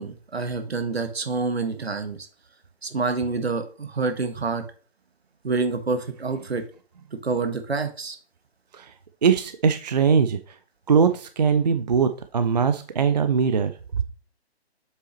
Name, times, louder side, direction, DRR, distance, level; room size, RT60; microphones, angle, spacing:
voice 1, 0.0-2.2 2.8-4.6 5.4-6.6 7.2-8.2, right 4 dB, 70° right, 7 dB, 1.4 m, -27 dB
voice 2, 9.2-10.4 10.9-14.0, right 6 dB, 40° right, 10 dB, 0.5 m, -21 dB
7.6 x 5.9 x 3.0 m, 0.40 s
figure-of-eight pair, 140°, 33 cm